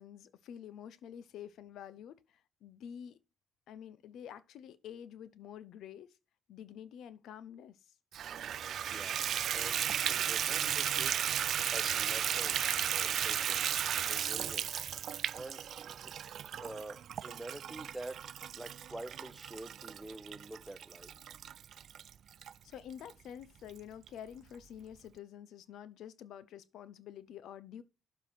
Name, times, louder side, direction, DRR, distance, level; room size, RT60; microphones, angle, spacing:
voice 1, 0.0-3.2 3.7-6.1 6.5-7.9 22.6-27.8, left 9 dB, 80° left, 0.6 m, -48 dB
Water tap faucet / Bathtub (filling or washing), 8.1-22.5 23.1-23.2 23.7-23.8 24.1-24.2, right 9 dB, 65° right, 0.3 m, -35 dB
voice 2, 8.9-9.3 9.5-9.8 10.1-11.1 11.7-12.6 13.0-13.7 14.1-14.8 15.3-16.1 16.6-18.2 18.5-21.1, right 1 dB, 10° right, 1.0 m, -47 dB
6.9 x 4.6 x 5.7 m
cardioid pair, 90°, 0 cm